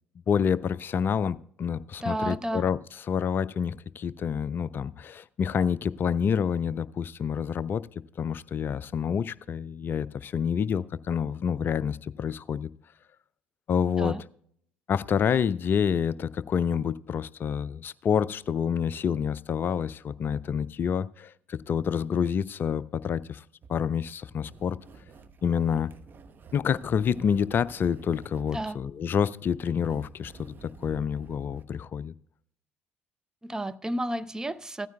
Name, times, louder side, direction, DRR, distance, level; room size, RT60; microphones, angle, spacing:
voice 1, 0.3-2.8 3.1-7.8 8.2-12.7 13.7-14.2 14.9-23.4 23.7-24.8 25.4-25.9 26.5-30.3 30.6-32.1, left 7 dB, 40° left, 0.4 m, -28 dB
voice 2, 2.0-2.7 14.0-14.2 28.5-28.8 33.4-34.9, right 1 dB, 10° right, 0.6 m, -31 dB
sound 1, 23.6-31.6, right 4 dB, 35° right, 0.9 m, -50 dB
16.0 x 14.0 x 2.3 m
figure-of-eight pair, 55°, 6 cm